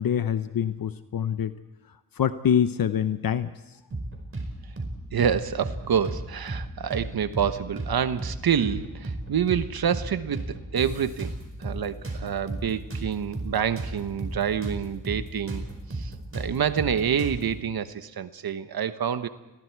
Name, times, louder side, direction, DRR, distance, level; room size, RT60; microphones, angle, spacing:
voice 1, 0.0-1.5 2.2-3.5, left 8 dB, 70° left, 11 dB, 0.8 m, -25 dB
sound 1, 3.9-4.5 4.8-4.9 5.2-6.2 6.5-6.6 6.9-7.9 8.2-8.4 8.6-9.6 9.9-10.1 10.3-11.8 12.0-14.8 15.0-15.2 15.5-17.5, right 2 dB, 35° right, 4.9 m, -33 dB
voice 2, 5.1-11.3 11.6-15.7 15.9-19.3, right 8 dB, 80° right, 11 dB, 1.1 m, -27 dB
29.5 x 21.0 x 4.7 m, 1.0 s
wide cardioid pair, 80°, 37 cm